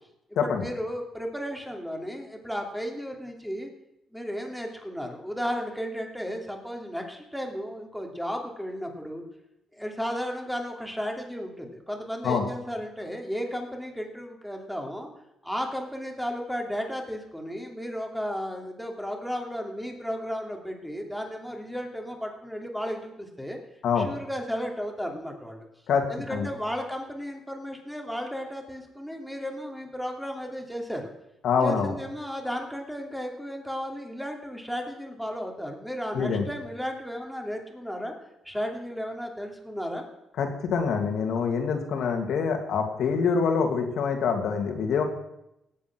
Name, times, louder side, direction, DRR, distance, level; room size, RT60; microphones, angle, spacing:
voice 1, 0.4-3.7 4.1-9.2 9.7-15.1 15.4-23.6 24.0-25.7 26.1-31.1 31.6-38.1 38.4-40.1, equal, ahead, 2 dB, 3.0 m, -34 dB
voice 2, 25.9-26.5 31.4-31.9 36.1-36.5 40.4-45.0, left 6 dB, 75° left, 4 dB, 2.7 m, -25 dB
17.5 x 8.5 x 6.2 m, 0.86 s
cardioid pair, 90°, 0 cm